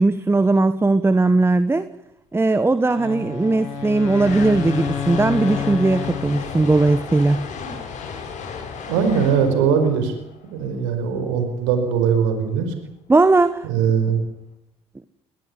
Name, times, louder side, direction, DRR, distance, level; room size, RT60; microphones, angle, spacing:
voice 1, 0.0-1.9 2.3-7.5 13.1-13.7, right 3 dB, 15° right, 14 dB, 1.3 m, -18 dB
Wind instrument woodwind instrument, 2.9-7.1, left 8 dB, 90° left, 5.0 m, -29 dB
sound 1, 3.2-11.3, left 5 dB, 60° left, 6.6 m, -34 dB
voice 2, 8.9-10.1 10.5-12.7 13.6-14.2, right 7 dB, 80° right, 7 dB, 4.9 m, -20 dB
21.5 x 21.5 x 9.4 m, 0.82 s
hypercardioid pair, 60°, 14 cm